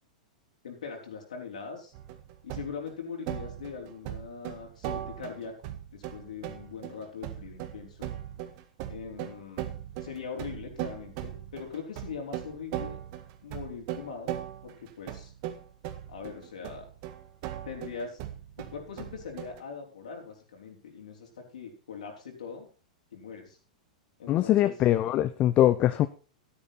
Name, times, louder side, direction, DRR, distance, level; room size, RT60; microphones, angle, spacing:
voice 1, 0.6-1.9 2.4-5.5 5.9-8.1 8.9-13.0 13.4-14.4 14.6-15.3 16.1-16.9 17.6-18.2 18.6-22.7 23.1-23.6 24.2-24.7, left 6 dB, 75° left, 4.3 m, -41 dB
sound 1, 1.9-2.9 3.3-19.6, right 12 dB, 50° right, 1.6 m, -39 dB
voice 2, 24.3-26.1, left 13 dB, 35° left, 0.7 m, -22 dB
12.5 x 10.5 x 4.2 m
hypercardioid pair, 100°, 4 cm